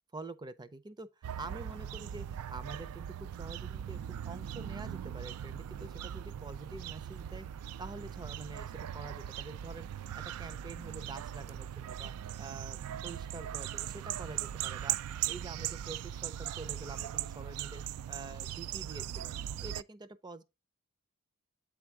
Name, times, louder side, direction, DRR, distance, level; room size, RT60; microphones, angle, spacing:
voice 1, 0.1-7.5 7.8-9.9 10.1-17.8 18.1-19.3 19.6-20.4, right 3 dB, 20° right, 0.5 m, -47 dB
sound 1, 1.2-19.8, right 11 dB, 85° right, 0.3 m, -39 dB
8.2 x 3.5 x 4.6 m
head